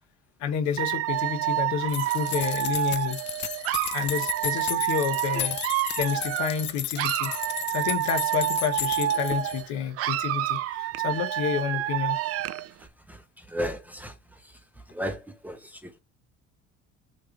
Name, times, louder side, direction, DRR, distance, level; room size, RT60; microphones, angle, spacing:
voice 1, 0.4-3.2 3.9-5.6 6.0-7.3 7.7-12.2, left 8 dB, 70° left, 1.4 m, -29 dB
Dog / Alarm, 0.8-6.7 7.0-9.7 10.0-12.7, right 14 dB, 55° right, 0.5 m, -28 dB
sound 1, 1.9-9.6, left 11 dB, 40° left, 0.4 m, -34 dB
voice 2, 13.1-14.1 14.9-16.0, equal, 5° right, 0.7 m, -34 dB
6.6 x 3.2 x 5.2 m
cardioid pair, 160°, 29 cm